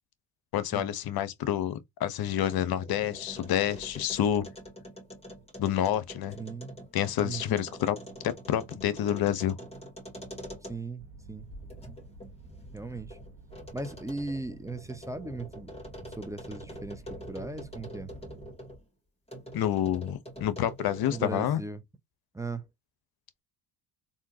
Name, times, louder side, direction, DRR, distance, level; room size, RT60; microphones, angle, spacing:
voice 1, 0.5-4.5 5.6-6.4 6.9-8.0 8.2-9.6 19.5-21.6, left 11 dB, 50° left, 0.8 m, -28 dB
sound 1, 2.1-11.0 11.5-18.8 19.3-21.4, equal, 15° left, 2.1 m, -45 dB
voice 2, 6.4-6.8 7.2-7.6 10.7-11.0 11.3-11.5 12.7-13.2 13.7-15.7 16.1-17.0 17.3-18.1 21.1-21.8 22.3-22.6, right 3 dB, 5° right, 0.6 m, -37 dB
sound 2, 11.0-18.5, right 3 dB, 60° right, 1.3 m, -51 dB
3.6 x 2.8 x 2.7 m
supercardioid pair, 75°, 47 cm